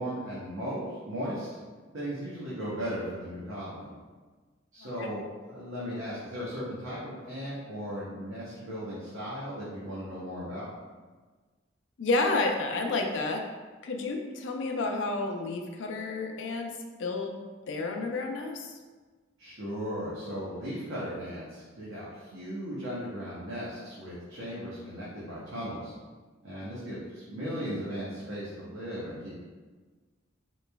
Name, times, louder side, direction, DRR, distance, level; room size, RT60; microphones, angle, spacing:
voice 1, 0.0-1.5 1.9-3.9 4.7-10.7 19.4-25.9 26.4-29.4, equal, 70° right, -9 dB, 0.8 m, -37 dB
voice 2, 12.0-13.5 13.8-16.7 17.0-18.8, left 3 dB, 60° left, 3 dB, 0.4 m, -30 dB
3.9 x 3.0 x 2.2 m, 1.4 s
head